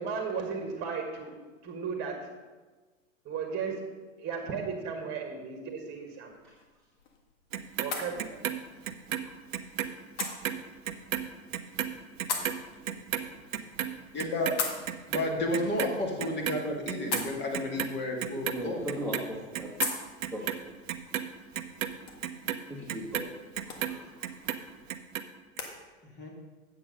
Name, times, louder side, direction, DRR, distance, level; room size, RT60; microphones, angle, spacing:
voice 1, 0.0-1.3 1.6-2.2 3.3-3.8 4.2-6.3 7.8-8.2, right 5 dB, 25° right, 3 dB, 1.6 m, -35 dB
sound 1, 6.2-25.7, left 5 dB, 60° left, 1.8 m, -42 dB
Clock, 7.5-9.9 10.2-16.6 16.9-17.9 18.2-19.2 19.5-24.0 24.2-25.2 25.6-25.7, right 10 dB, 70° right, 0.8 m, -33 dB
voice 2, 14.1-14.6 15.1-18.8 26.0-26.3, left 1 dB, 25° left, 1 dB, 2.1 m, -31 dB
voice 3, 18.5-19.7 20.3-20.4 22.7-23.0 23.7-24.5, equal, ahead, -5 dB, 1.5 m, -38 dB
8.7 x 7.7 x 5.2 m, 1.3 s
hypercardioid pair, 105°, 40 cm